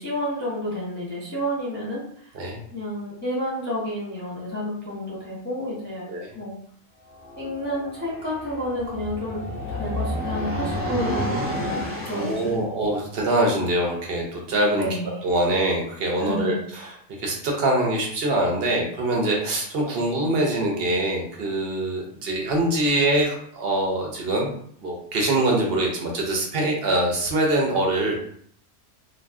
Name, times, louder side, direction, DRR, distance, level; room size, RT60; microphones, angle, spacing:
voice 1, 0.0-2.3 2.7-6.6 7.4-9.4 9.7-12.7 14.7-15.1 16.2-16.6, equal, 10° left, -6 dB, 0.7 m, -30 dB
sound 1, 7.1-12.6, left 1 dB, 5° right, 1.0 m, -30 dB
voice 2, 12.1-14.9 15.2-16.9 17.2-24.5 24.8-28.2, right 1 dB, 55° right, 0 dB, 0.7 m, -24 dB
2.5 x 2.3 x 3.5 m, 0.64 s
omnidirectional pair, 1.5 m